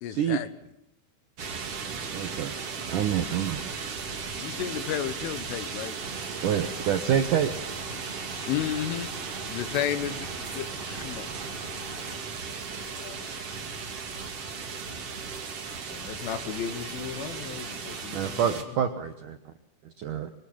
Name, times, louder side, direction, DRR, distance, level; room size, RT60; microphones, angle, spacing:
voice 1, 0.0-0.5 4.4-6.0 8.5-9.2 9.5-11.4 12.7-13.7, left 11 dB, 85° left, 13 dB, 3.9 m, -32 dB
sound 1, 1.4-18.6, right 5 dB, 40° right, 2.6 m, -36 dB
voice 2, 1.8-2.5 2.9-3.6 6.4-7.5 18.1-19.5 19.8-20.3, right 9 dB, 75° right, 7 dB, 1.9 m, -27 dB
sound 2, 6.0-12.2, right 1 dB, 15° right, 2.0 m, -44 dB
voice 3, 15.9-18.8, left 7 dB, 60° left, 8 dB, 3.1 m, -37 dB
25.5 x 24.0 x 8.8 m, 0.76 s
omnidirectional pair, 5.5 m